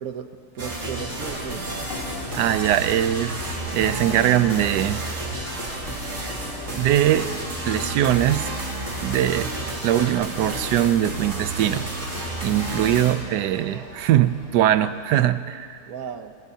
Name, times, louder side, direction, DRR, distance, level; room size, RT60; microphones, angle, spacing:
voice 1, 0.0-1.8 12.7-13.0 15.8-16.3, right 7 dB, 60° right, 8 dB, 1.3 m, -35 dB
sound 1, 0.6-13.1, right 2 dB, 45° right, 2.5 m, -31 dB
sound 2, 0.8-15.5, equal, 20° right, 4.0 m, -40 dB
sound 3, 1.9-5.5, left 7 dB, 80° left, 1.6 m, -45 dB
voice 2, 2.3-5.0 6.3-6.4 6.8-7.3 7.6-8.5 9.0-9.5 9.8-11.8 12.4-15.8, right 12 dB, 80° right, 12 dB, 1.2 m, -21 dB
24.5 x 20.5 x 2.8 m, 2.2 s
omnidirectional pair, 1.8 m